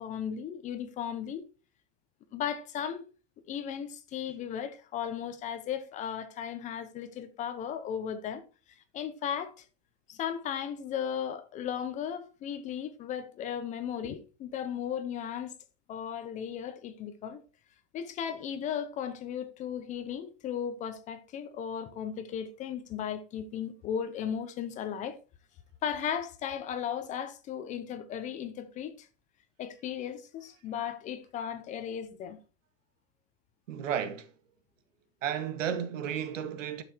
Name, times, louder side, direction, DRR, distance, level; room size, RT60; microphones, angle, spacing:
voice 1, 0.0-1.5 2.3-3.0 3.5-8.4 8.7-9.6 10.1-15.5 15.9-17.4 17.9-25.2 25.8-29.1 29.6-32.4, left 8 dB, 20° left, 0.8 m, -36 dB
voice 2, 33.7-34.3 35.2-36.8, right 8 dB, 85° right, 2.0 m, -33 dB
11.0 x 6.9 x 4.5 m
supercardioid pair, 160°, 37 cm